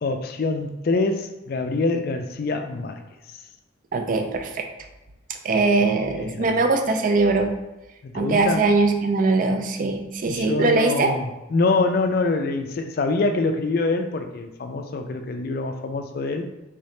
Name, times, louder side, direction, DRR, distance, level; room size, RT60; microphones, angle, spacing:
voice 1, 0.0-3.0 5.8-6.5 8.0-8.7 10.3-16.5, left 3 dB, 50° left, 6 dB, 0.3 m, -25 dB
voice 2, 3.9-4.6 5.4-7.6 8.1-11.1, right 3 dB, 40° right, 5 dB, 0.4 m, -21 dB
3.8 x 2.7 x 3.2 m, 1.0 s
head